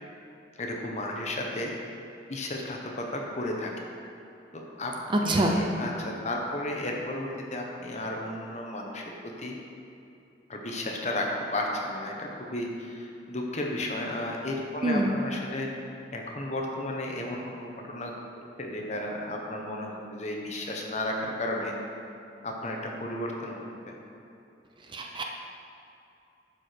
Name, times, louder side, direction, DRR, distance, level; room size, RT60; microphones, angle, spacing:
voice 1, 0.6-1.7 2.3-3.7 4.5-9.5 10.5-11.3 11.5-15.7 16.1-18.1 18.6-21.7 22.4-24.0, left 1 dB, 40° left, 0 dB, 1.0 m, -33 dB
voice 2, 5.2-5.6 14.8-15.2 24.9-25.2, right 1 dB, 25° right, 1 dB, 0.6 m, -25 dB
11.5 x 4.8 x 4.5 m, 2.7 s
head